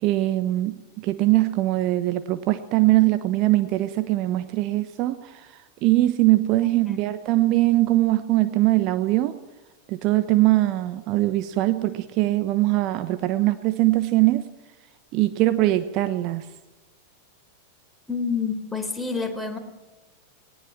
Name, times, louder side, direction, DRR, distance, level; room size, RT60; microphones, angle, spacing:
voice 1, 0.0-9.4 9.9-14.5 15.1-16.5, right 17 dB, 40° right, 11 dB, 1.1 m, -22 dB
voice 2, 18.1-19.6, left 5 dB, 5° left, 3 dB, 4.0 m, -28 dB
20.0 x 19.0 x 7.5 m, 1.1 s
figure-of-eight pair, 90°, 0 cm